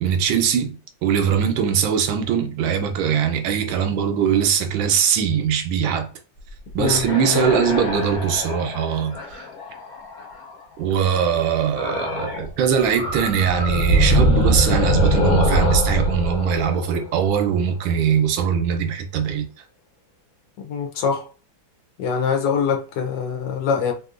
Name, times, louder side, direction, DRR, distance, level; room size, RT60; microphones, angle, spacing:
voice 1, 0.0-0.8 1.0-6.1 6.7-9.2 10.8-19.4, right 7 dB, 85° right, 1.4 m, -21 dB
sound 1, 6.5-10.6 11.7-12.5 12.8-17.7, equal, 55° left, 1.5 m, -23 dB
voice 2, 6.8-7.5 20.6-21.2 22.0-23.9, left 6 dB, 70° left, 1.3 m, -23 dB
3.3 x 2.6 x 2.4 m
omnidirectional pair, 2.1 m